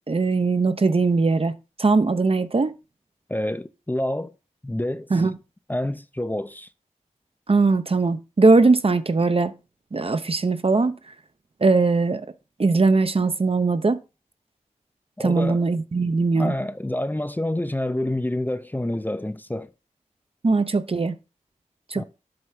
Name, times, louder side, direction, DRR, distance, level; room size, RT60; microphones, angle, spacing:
voice 1, 0.1-1.5 1.8-2.8 5.1-5.3 7.5-9.5 9.9-11.0 11.6-12.3 12.6-14.0 15.2-16.5 20.4-21.1 21.9-22.0, right 3 dB, 45° right, 0.6 m, -20 dB
voice 2, 3.3-4.3 4.6-5.2 5.7-6.7 15.2-15.7 16.3-19.7 21.9-22.0, left 1 dB, 15° left, 0.5 m, -28 dB
7.8 x 3.3 x 5.7 m
cardioid pair, 45°, 14 cm